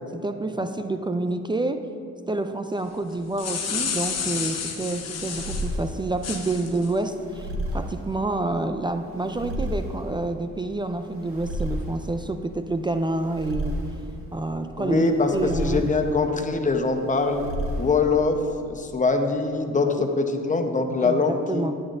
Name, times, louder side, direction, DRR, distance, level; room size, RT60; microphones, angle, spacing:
voice 1, 0.1-1.9 2.3-13.8 14.3-15.8 20.0-20.1 21.0-21.7, right 2 dB, 15° right, 8 dB, 0.3 m, -28 dB
sound 1, 3.1-5.7 6.2-6.9, left 6 dB, 55° left, 1.1 m, -30 dB
sound 2, 3.9-18.4, equal, 45° right, 1.5 m, -34 dB
voice 2, 14.8-17.4 17.8-18.4 18.6-21.7, left 3 dB, 25° left, 5 dB, 0.8 m, -23 dB
10.5 x 10.0 x 2.6 m, 2.3 s
cardioid pair, 90°, 30 cm